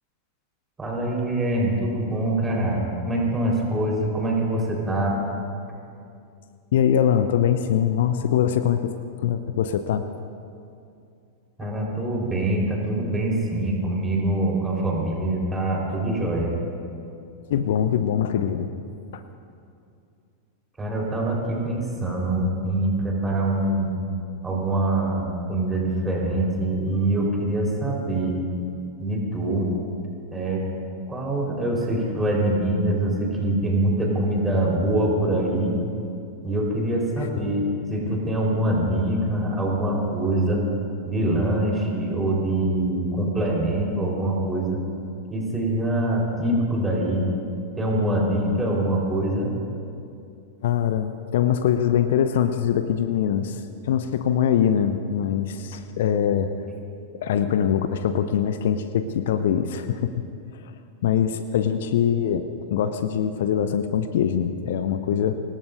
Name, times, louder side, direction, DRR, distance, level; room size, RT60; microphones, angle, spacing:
voice 1, 0.8-5.2 11.6-16.5 20.8-23.9 24.4-28.4 29.0-29.7 30.3-30.6 31.1-35.8 36.4-40.6 41.1-44.8 45.3-47.2 47.8-49.5, right 1 dB, 15° right, -2 dB, 4.3 m, -24 dB
voice 2, 6.7-10.0 11.6-11.7 17.5-18.7 19.1-19.2 37.2-37.3 50.6-56.5 57.1-60.1 61.0-65.3, left 9 dB, 55° left, 10 dB, 0.6 m, -23 dB
25.0 x 19.0 x 2.6 m, 2.5 s
figure-of-eight pair, 90°, 0 cm